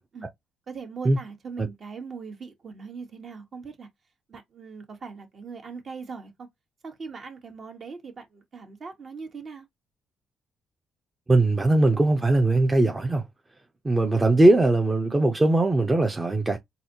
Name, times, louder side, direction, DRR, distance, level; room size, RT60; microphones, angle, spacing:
voice 1, 0.7-3.9 4.3-6.5 6.8-9.7, right 5 dB, 50° right, 1.3 m, -40 dB
voice 2, 11.3-13.2 13.8-16.6, right 2 dB, 20° right, 0.7 m, -20 dB
4.0 x 2.7 x 2.7 m
cardioid pair, 90°, 0 cm